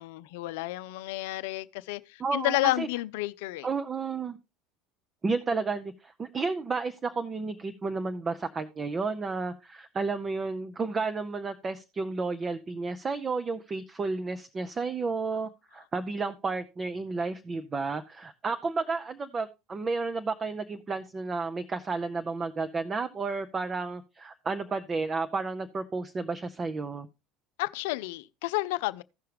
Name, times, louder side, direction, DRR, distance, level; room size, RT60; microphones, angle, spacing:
voice 1, 0.0-3.7 27.6-29.0, left 18 dB, 70° left, 0.4 m, -31 dB
voice 2, 2.2-2.9 3.6-4.4 5.2-27.1, right 4 dB, 30° right, 0.7 m, -32 dB
15.5 x 5.6 x 3.3 m
hypercardioid pair, 70°, 0 cm